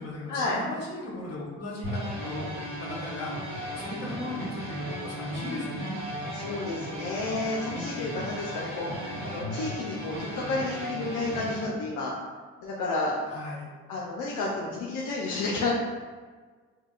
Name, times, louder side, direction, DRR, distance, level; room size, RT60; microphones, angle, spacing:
voice 1, 0.0-3.4 3.8-5.9 13.3-13.7, left 2 dB, 55° left, -4 dB, 1.1 m, -37 dB
sound 1, 1.8-11.6, equal, 90° right, 1.2 m, -36 dB
voice 2, 6.3-12.1 12.6-13.2 13.9-15.7, left 3 dB, 80° left, -4 dB, 0.6 m, -31 dB
4.4 x 2.2 x 2.4 m, 1.5 s
cardioid pair, 90°, 30 cm